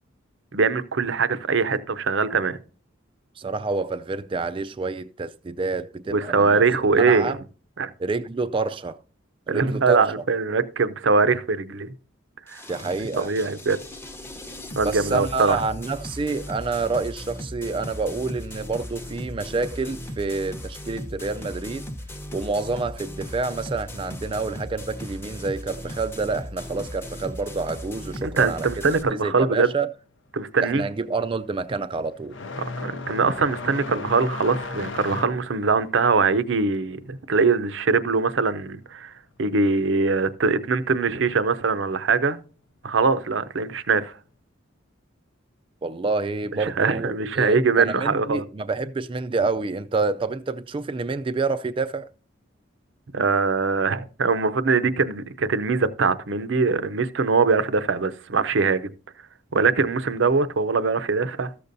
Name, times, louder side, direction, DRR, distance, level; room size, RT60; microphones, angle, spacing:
voice 1, 0.5-2.6 6.1-7.3 7.8-7.9 9.5-11.9 12.5-12.6 13.2-13.8 14.8-15.6 28.2-29.7 30.3-30.8 32.8-39.1 39.4-42.4 42.8-44.1 46.6-48.4 53.1-58.9 59.5-61.5, right 4 dB, 70° right, 0.6 m, -22 dB
voice 2, 3.4-6.6 7.0-7.4 8.0-9.0 9.5-10.0 12.7-13.3 14.8-21.9 22.3-29.9 30.6-32.4 45.8-52.1, right 3 dB, 25° right, 0.3 m, -28 dB
sound 1, 12.5-29.0, left 1 dB, 10° left, 0.7 m, -37 dB
sound 2, 29.7-30.0 30.4-38.7 39.0-40.0 41.0-41.1 41.9-42.0 43.7-43.9, left 3 dB, 75° left, 0.7 m, -37 dB
14.0 x 6.7 x 2.6 m
head